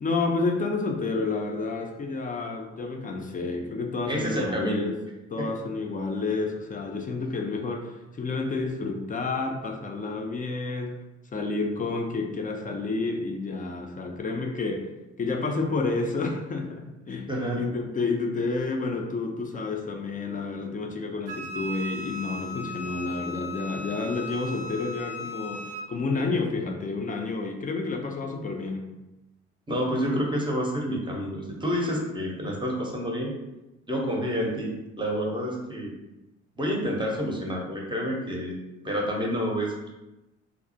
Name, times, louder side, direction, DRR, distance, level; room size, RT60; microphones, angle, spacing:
voice 1, 0.0-4.9 5.3-11.0 11.3-14.9 15.2-17.3 17.6-25.6 25.9-28.9, left 3 dB, 25° left, 2 dB, 0.4 m, -30 dB
voice 2, 4.1-4.9 5.4-5.5 17.3-17.6 29.7-33.3 33.9-35.9 36.6-38.6 38.8-39.9, equal, 15° right, -2 dB, 0.7 m, -28 dB
Wind instrument woodwind instrument, 21.3-25.9, left 2 dB, 65° right, 0.4 m, -37 dB
2.3 x 2.0 x 2.6 m, 0.99 s
hypercardioid pair, 50°, 34 cm